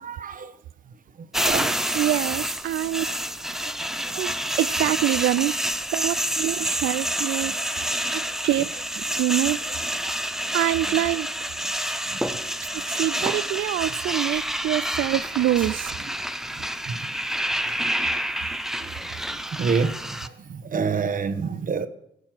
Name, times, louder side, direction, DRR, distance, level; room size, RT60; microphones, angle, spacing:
voice 1, 0.0-0.5 1.5-1.7 19.6-19.9 20.7-21.9, right 5 dB, 45° right, 1.1 m, -25 dB
sound 1, 1.3-20.3, equal, ahead, 0.6 m, -28 dB
voice 2, 1.9-3.1 4.1-5.5 5.9-7.9 8.1-8.7 9.0-9.6 10.5-11.3 12.9-15.9, right 14 dB, 75° right, 0.5 m, -25 dB
16.0 x 6.5 x 7.6 m
cardioid pair, 90°, 20 cm